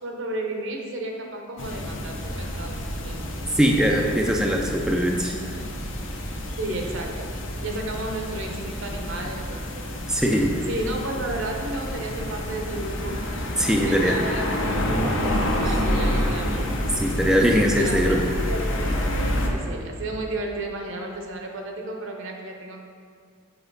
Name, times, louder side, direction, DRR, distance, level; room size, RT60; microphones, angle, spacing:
voice 1, 0.0-3.2 4.3-5.0 6.6-7.1 7.6-9.8 10.7-13.3 13.8-16.7 17.8-18.9 19.5-22.8, right 2 dB, 65° right, 2 dB, 0.9 m, -33 dB
sound 1, 1.6-19.5, equal, 65° left, 0.8 m, -28 dB
voice 2, 3.5-5.3 10.1-10.6 13.6-14.2 16.9-18.2, equal, 5° right, 0 dB, 0.4 m, -21 dB
6.9 x 5.0 x 4.1 m, 2.1 s
head